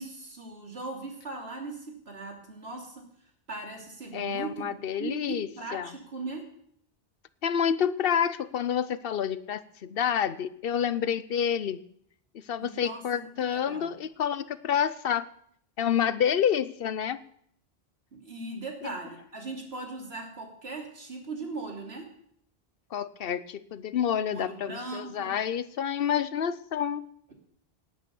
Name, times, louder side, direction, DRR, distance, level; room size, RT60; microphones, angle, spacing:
voice 1, 0.0-3.0 3.5-4.7 5.0-6.4 12.6-13.9 18.1-22.1 24.3-25.4, right 3 dB, 80° right, 1 dB, 3.4 m, -39 dB
voice 2, 4.1-5.9 7.4-11.8 12.3-15.3 15.8-17.2 18.8-18.9 22.9-27.0, left 8 dB, 65° left, 15 dB, 0.9 m, -28 dB
18.0 x 8.9 x 7.0 m, 0.67 s
omnidirectional pair, 1.0 m